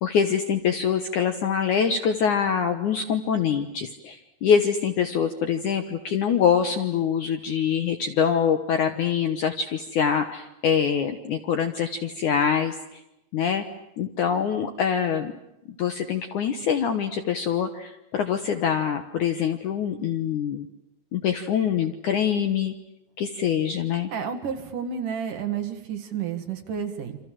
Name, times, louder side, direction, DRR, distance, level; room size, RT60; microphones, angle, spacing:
voice 1, 0.0-13.0 13.3-13.6 14.0-15.3 15.8-20.7 21.1-22.7 23.2-24.1, left 7 dB, 65° left, 8 dB, 2.1 m, -24 dB
voice 2, 24.1-27.2, right 7 dB, 55° right, 6 dB, 3.1 m, -31 dB
28.5 x 26.0 x 7.6 m, 0.86 s
omnidirectional pair, 4.9 m